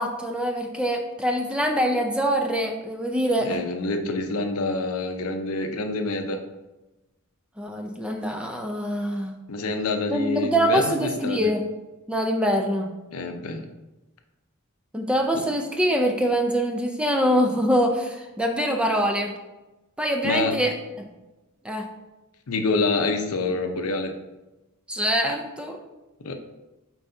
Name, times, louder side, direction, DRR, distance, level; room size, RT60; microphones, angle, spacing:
voice 1, 0.0-3.6 7.6-9.3 10.1-11.6 12.1-12.9 14.9-19.3 20.0-21.1 21.6-21.9 24.9-25.8, equal, 5° right, 3 dB, 0.4 m, -24 dB
voice 2, 3.4-6.4 9.5-11.5 13.1-13.6 15.3-15.4 20.2-20.6 22.5-24.1 26.2-26.3, left 3 dB, 70° left, 6 dB, 0.6 m, -27 dB
7.6 x 4.7 x 2.7 m, 1.1 s
head